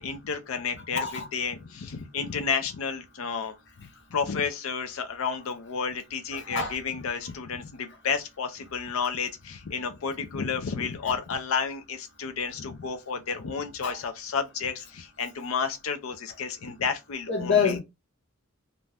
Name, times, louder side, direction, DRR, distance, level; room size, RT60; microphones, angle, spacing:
voice 1, 0.0-17.8, left 5 dB, 75° left, 0.5 m, -31 dB
voice 2, 6.3-6.7 13.8-14.0 17.3-17.8, left 6 dB, 55° left, 0.9 m, -26 dB
2.6 x 2.2 x 3.3 m
head